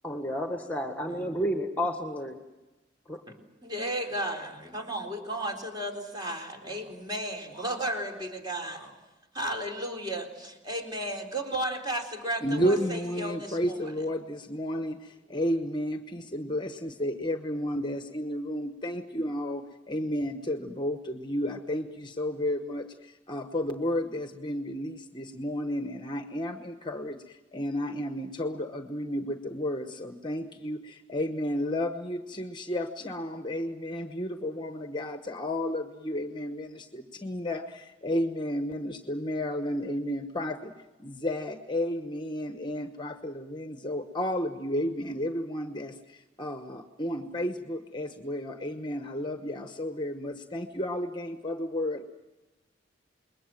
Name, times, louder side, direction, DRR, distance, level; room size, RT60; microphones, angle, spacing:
voice 1, 0.0-2.4 3.1-3.2, equal, 10° left, 4 dB, 1.6 m, -31 dB
voice 2, 3.6-8.9 9.3-13.9, right 1 dB, 25° right, 3 dB, 3.9 m, -34 dB
voice 3, 12.4-40.7 41.0-52.1, equal, 25° left, 7 dB, 1.1 m, -32 dB
28.0 x 22.0 x 7.7 m, 1.1 s
head